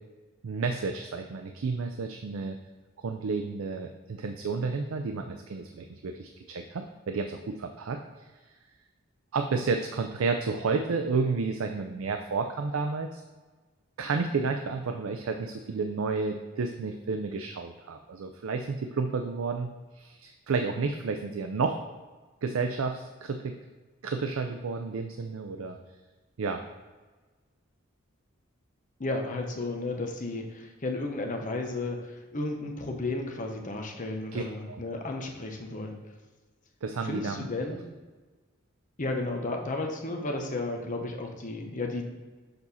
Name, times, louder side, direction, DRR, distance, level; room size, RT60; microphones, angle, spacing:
voice 1, 0.4-2.6 3.0-8.2 9.3-13.2 14.0-21.8 22.4-23.6 24.0-25.8 26.4-26.6 34.3-34.8 36.8-37.5, right 4 dB, 75° right, 5 dB, 0.4 m, -31 dB
voice 2, 29.0-35.9 37.0-37.8 39.0-42.0, left 2 dB, 40° left, 2 dB, 0.9 m, -33 dB
6.9 x 4.2 x 4.1 m, 1.3 s
head